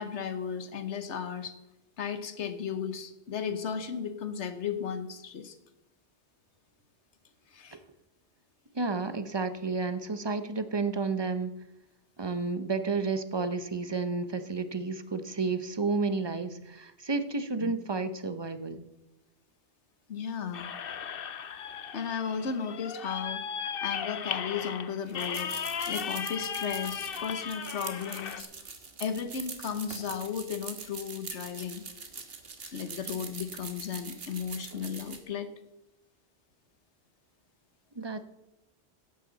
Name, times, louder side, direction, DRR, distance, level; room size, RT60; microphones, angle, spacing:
voice 1, 0.0-1.6 2.0-5.6 7.5-7.8 17.6-17.7 20.1-20.7 21.9-23.4 23.8-25.5 25.9-28.5 29.0-31.9 32.7-35.5, left 7 dB, 85° left, 10 dB, 1.4 m, -35 dB
voice 2, 8.7-11.5 12.2-18.9 37.9-38.2, right 4 dB, 25° right, 10 dB, 0.8 m, -31 dB
sound 1, 20.5-28.4, left 7 dB, 60° left, 0.9 m, -36 dB
sound 2, 25.1-35.2, right 4 dB, 60° right, 1.6 m, -43 dB
14.5 x 11.0 x 4.0 m, 0.96 s
omnidirectional pair, 1.1 m